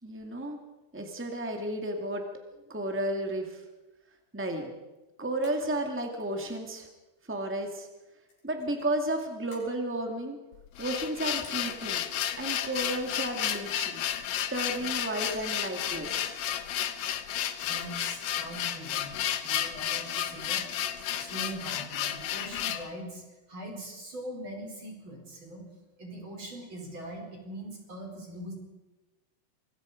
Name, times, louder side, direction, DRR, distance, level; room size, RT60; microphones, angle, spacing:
voice 1, 0.0-0.6 0.9-2.2 2.7-3.6 4.3-4.7 5.2-6.9 7.3-7.9 8.4-10.4 10.8-12.0 12.4-14.0 14.5-16.3, right 1 dB, 10° right, 3 dB, 0.6 m, -33 dB
sound 1, 5.4-5.8 6.2-6.6 8.3-8.9 9.5-9.7 11.1-11.2 11.4-12.7 14.4-15.0 15.2-15.6 17.5-18.5 20.0-20.6 20.9-21.1, left 3 dB, 70° left, 7.2 m, -53 dB
sound 2, 10.5-22.9, left 10 dB, 85° left, 1.5 m, -32 dB
voice 2, 17.6-19.2 19.4-20.7 21.1-23.2 23.5-25.6 26.0-28.5, right 1 dB, 30° right, 1 dB, 5.5 m, -42 dB
26.5 x 22.5 x 5.2 m, 1.1 s
omnidirectional pair, 5.0 m